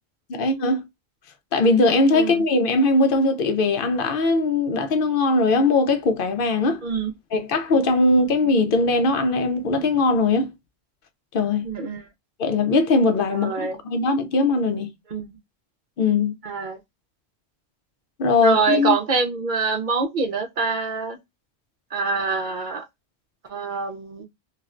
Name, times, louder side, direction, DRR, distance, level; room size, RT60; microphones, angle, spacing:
voice 1, 0.3-0.8 1.5-6.8 7.3-10.5 11.3-11.7 12.4-14.9 16.0-16.3 18.2-19.0, left 3 dB, 60° left, 0.7 m, -20 dB
voice 2, 11.6-12.0 13.3-13.8 15.1-15.4 16.4-16.8 18.4-21.2 21.9-22.8 23.5-24.2, right 5 dB, 55° right, 0.7 m, -25 dB
3.1 x 2.4 x 2.4 m
omnidirectional pair, 1.1 m